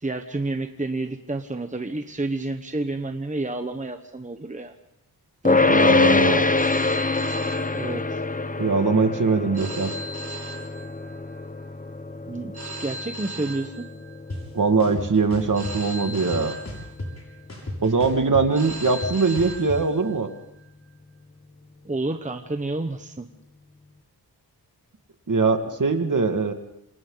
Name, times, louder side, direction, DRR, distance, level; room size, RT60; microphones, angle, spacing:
voice 1, 0.0-4.7 5.4-5.6 7.7-8.2 12.3-13.9 21.8-23.3, right 2 dB, 20° right, 6 dB, 1.2 m, -30 dB
sound 1, 5.4-16.8, left 3 dB, 20° left, 0.7 m, -25 dB
voice 2, 5.7-6.5 8.6-9.9 14.5-16.6 17.8-20.3 25.3-26.5, right 4 dB, 50° right, 6 dB, 2.2 m, -22 dB
Telephone, 6.5-8.4 9.5-11.4 12.5-14.4 15.5-17.4 18.5-20.4, right 1 dB, 80° right, 7.1 m, -38 dB
sound 2, 14.3-14.4 14.8-15.7 16.1-17.2 17.5-19.8, left 1 dB, 40° left, 6.8 m, -33 dB
28.0 x 26.5 x 4.0 m, 0.80 s
wide cardioid pair, 110°, 39 cm